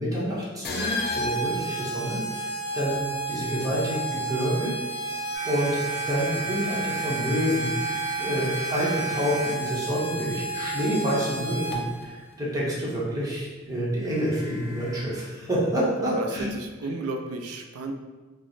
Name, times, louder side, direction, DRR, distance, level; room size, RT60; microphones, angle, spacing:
voice 1, 0.0-3.0 3.3-5.8 6.1-16.5, equal, 15° right, -6 dB, 0.8 m, -28 dB
sound 1, 0.6-12.0, right 2 dB, 50° left, 0.5 m, -32 dB
sound 2, 5.3-11.3 14.0-15.0, right 2 dB, 10° left, 1.0 m, -35 dB
voice 2, 16.5-17.9, right 3 dB, 90° right, 5 dB, 0.4 m, -33 dB
3.0 x 2.0 x 3.9 m, 1.3 s
head